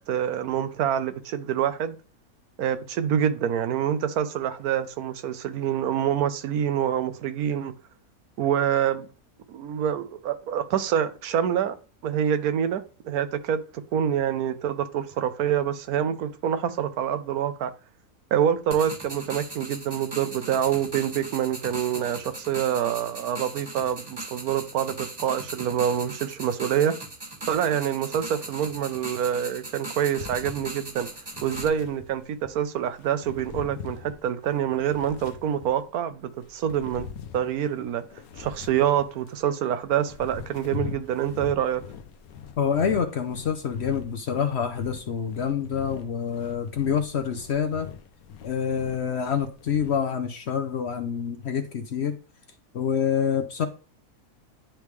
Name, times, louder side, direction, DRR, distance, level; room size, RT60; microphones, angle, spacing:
voice 1, 0.1-2.0 2.6-7.7 8.4-9.1 9.5-11.8 12.0-13.6 13.9-17.7 18.3-26.9 27.5-31.1 31.4-37.1 37.3-38.0 38.4-41.8, right 9 dB, 75° right, 1.1 m, -26 dB
sound 1, 18.7-31.7, right 2 dB, 20° right, 0.8 m, -39 dB
sound 2, 30.2-32.6 33.0-35.9 36.4-39.4 39.9-50.0, left 7 dB, 75° left, 1.1 m, -42 dB
voice 2, 42.6-47.9 48.4-52.1 52.7-53.7, left 7 dB, 55° left, 0.8 m, -27 dB
10.5 x 3.5 x 3.1 m
omnidirectional pair, 1.6 m